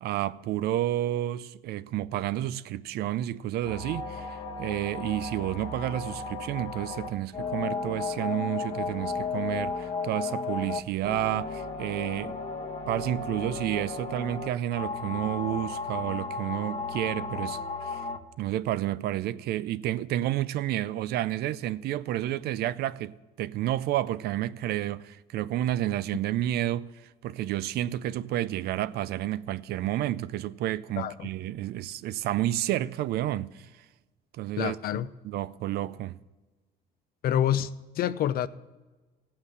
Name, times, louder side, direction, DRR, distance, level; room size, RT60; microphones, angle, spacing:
voice 1, 0.0-12.4 12.9-18.0 18.4-26.9 27.2-33.7 34.3-34.8 35.2-36.2, right 13 dB, 70° right, 0.4 m, -30 dB
sound 1, 3.6-18.2, left 4 dB, 40° left, 1.1 m, -34 dB
voice 2, 31.0-31.3 34.6-35.1 37.2-37.7 38.0-38.5, left 11 dB, 60° left, 0.6 m, -27 dB
15.0 x 5.8 x 6.6 m
cardioid pair, 110°, 17 cm